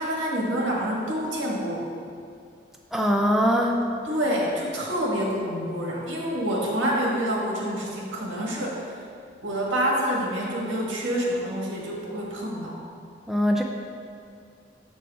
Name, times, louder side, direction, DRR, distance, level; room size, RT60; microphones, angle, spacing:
voice 1, 0.0-1.9 4.0-8.8 9.4-12.8, equal, 80° right, -3 dB, 1.5 m, -27 dB
voice 2, 2.9-3.8 13.3-13.6, equal, ahead, 1 dB, 0.3 m, -21 dB
7.1 x 6.1 x 3.5 m, 2.3 s
head